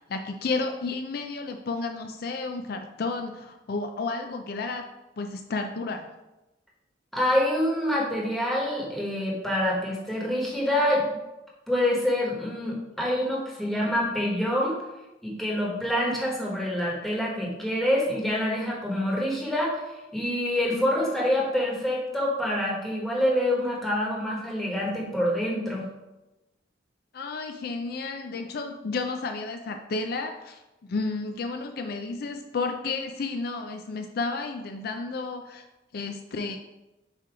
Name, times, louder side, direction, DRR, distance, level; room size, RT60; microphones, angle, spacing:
voice 1, 0.0-4.9 5.2-6.1 27.1-30.6 30.9-35.6 35.9-36.6, left 3 dB, 55° left, 5 dB, 0.4 m, -32 dB
voice 2, 7.1-11.2 11.7-14.8 15.2-19.8 20.1-25.8, left 1 dB, ahead, -4 dB, 1.3 m, -26 dB
7.5 x 3.0 x 4.7 m, 1.0 s
head